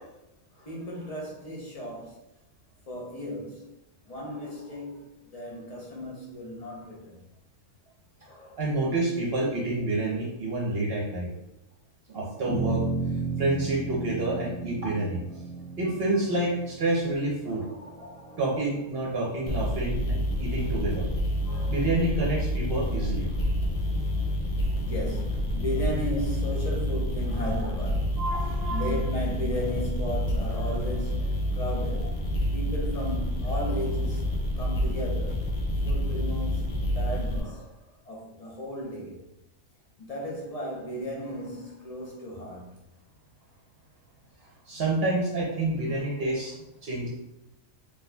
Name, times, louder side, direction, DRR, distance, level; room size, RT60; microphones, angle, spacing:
voice 1, 0.5-2.2 2.9-3.7 4.1-7.2 8.2-8.6 17.5-18.8 21.4-22.3 22.9-23.1 24.8-32.3 32.5-35.4 35.8-36.6 36.9-39.2 40.0-42.8 45.9-46.2, equal, 40° left, -3 dB, 0.6 m, -36 dB
voice 2, 8.6-11.3 12.1-12.8 13.4-15.2 15.8-17.6 18.4-21.1 21.6-23.3 28.2-28.9 44.7-47.1, right 2 dB, 55° right, -3 dB, 0.9 m, -28 dB
sound 1, 12.5-19.0, right 4 dB, 25° right, 1.1 m, -34 dB
sound 2, 19.5-37.4, equal, 65° left, 0.9 m, -28 dB
4.0 x 2.9 x 2.2 m, 0.88 s
omnidirectional pair, 1.4 m